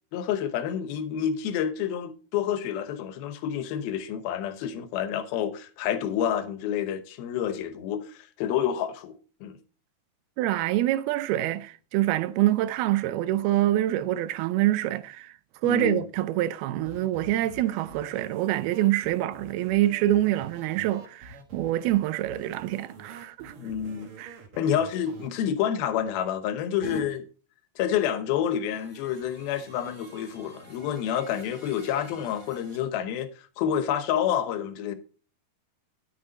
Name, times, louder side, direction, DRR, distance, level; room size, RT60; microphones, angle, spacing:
voice 1, 0.1-9.6 15.6-16.0 23.6-24.1 24.5-27.3 27.8-35.0, left 9 dB, 75° left, 2.7 m, -29 dB
voice 2, 10.4-15.3 15.6-23.5 24.2-24.4, right 14 dB, 80° right, 2.4 m, -26 dB
sound 1, 16.8-25.3, right 3 dB, 60° right, 1.4 m, -47 dB
sound 2, 26.8-27.0 28.4-32.8, left 2 dB, 20° right, 3.2 m, -46 dB
10.5 x 7.8 x 3.9 m
omnidirectional pair, 4.6 m